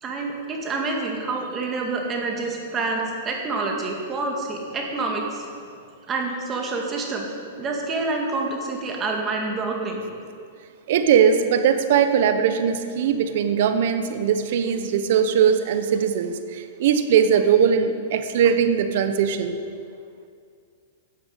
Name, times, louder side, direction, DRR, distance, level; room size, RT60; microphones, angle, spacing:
voice 1, 0.0-5.5 6.1-7.3 7.6-10.0, right 3 dB, 25° right, 0 dB, 2.0 m, -27 dB
voice 2, 10.9-19.5, right 7 dB, 60° right, 9 dB, 0.9 m, -20 dB
11.5 x 7.6 x 6.7 m, 2.3 s
hypercardioid pair, 135°, 0 cm